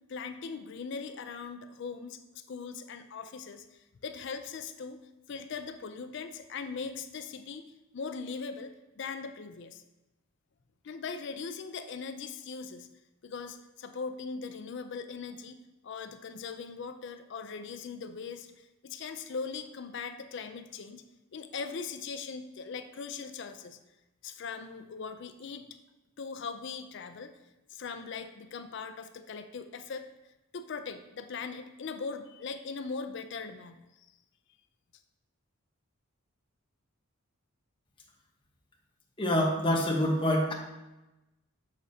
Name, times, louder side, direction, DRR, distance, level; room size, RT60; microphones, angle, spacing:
voice 1, 0.1-5.0 5.3-9.8 10.8-12.9 13.2-21.0 21.3-23.8 24.2-25.6 26.2-27.4 27.7-30.1 30.5-34.1, left 5 dB, 55° left, 9 dB, 0.4 m, -40 dB
voice 2, 39.2-40.5, left 1 dB, 25° left, -1 dB, 0.9 m, -26 dB
6.9 x 6.6 x 2.7 m, 0.99 s
head